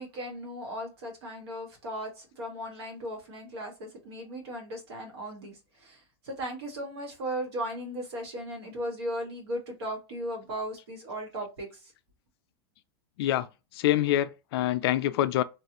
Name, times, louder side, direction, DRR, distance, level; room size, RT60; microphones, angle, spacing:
voice 1, 0.0-11.9, equal, 80° right, 1.6 m, -37 dB
voice 2, 13.8-15.4, left 13 dB, 70° left, 0.4 m, -25 dB
3.2 x 2.4 x 2.8 m
supercardioid pair, 145°, 13 cm